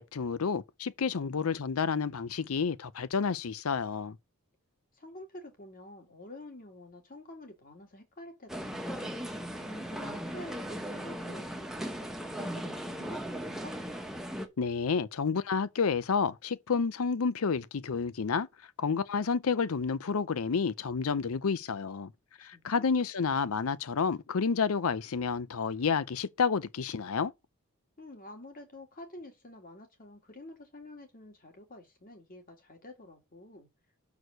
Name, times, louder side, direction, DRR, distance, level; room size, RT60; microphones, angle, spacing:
voice 1, 0.0-4.2 14.6-18.5 18.8-22.1 22.4-27.3, left 5 dB, 80° left, 0.5 m, -30 dB
voice 2, 4.9-9.1 9.7-11.9 12.2-13.3 13.6-13.8 22.4-22.9 28.0-33.7, left 1 dB, 40° left, 2.2 m, -49 dB
sound 1, 8.5-14.5, equal, ahead, 1.0 m, -38 dB
6.2 x 4.7 x 6.6 m
head